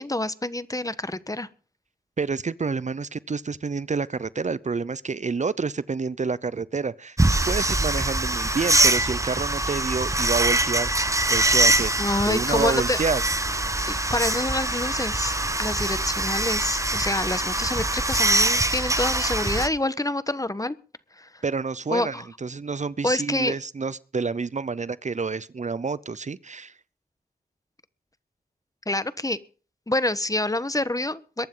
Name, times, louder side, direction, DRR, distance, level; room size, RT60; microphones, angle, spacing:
voice 1, 0.0-1.5 12.0-13.0 13.9-15.3 15.6-20.7 21.2-21.4 21.9-22.2 23.0-23.6 28.9-29.4 29.9-31.5, left 2 dB, 20° left, 1.2 m, -27 dB
voice 2, 2.2-7.2 7.5-10.9 11.3-12.0 12.3-13.2 21.4-22.2 22.4-26.7, right 4 dB, 50° right, 0.7 m, -28 dB
sound 1, 7.2-19.7, right 2 dB, 20° right, 1.3 m, -23 dB
22.5 x 12.0 x 3.9 m
cardioid pair, 50°, 16 cm